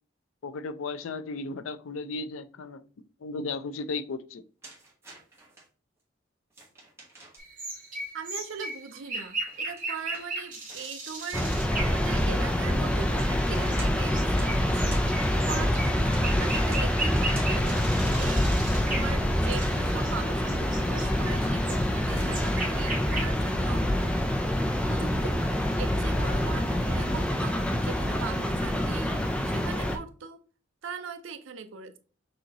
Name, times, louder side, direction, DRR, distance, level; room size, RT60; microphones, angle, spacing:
voice 1, 0.4-2.8 3.2-4.4, left 3 dB, 90° left, 0.4 m, -35 dB
sound 1, 4.6-5.7 6.5-7.6 9.4-11.7 13.1-17.7 19.5-19.9 22.0-22.5, right 2 dB, 15° right, 1.2 m, -48 dB
sound 2, 7.4-12.5 12.9-20.1 20.4-23.3, right 2 dB, 40° right, 1.9 m, -37 dB
voice 2, 8.1-18.5 18.9-23.9 24.7-29.2 29.4-30.4 30.8-32.0, right 6 dB, 75° right, 0.6 m, -40 dB
sound 3, 11.3-30.0, left 1 dB, 5° left, 0.4 m, -26 dB
6.2 x 2.8 x 2.9 m
head